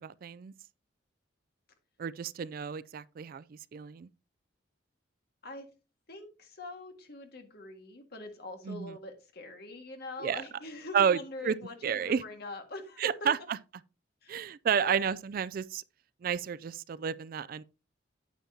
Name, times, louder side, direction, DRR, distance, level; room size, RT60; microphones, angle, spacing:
voice 1, 0.0-0.5 2.0-4.1 8.6-9.0 10.2-10.4 10.9-11.5 11.8-12.2 13.0-13.4 14.3-15.8 16.2-17.6, right 7 dB, 50° right, 0.3 m, -31 dB
voice 2, 6.1-13.1 14.2-14.4 14.8-15.1, left 2 dB, 55° left, 1.7 m, -43 dB
9.1 x 8.7 x 2.7 m
head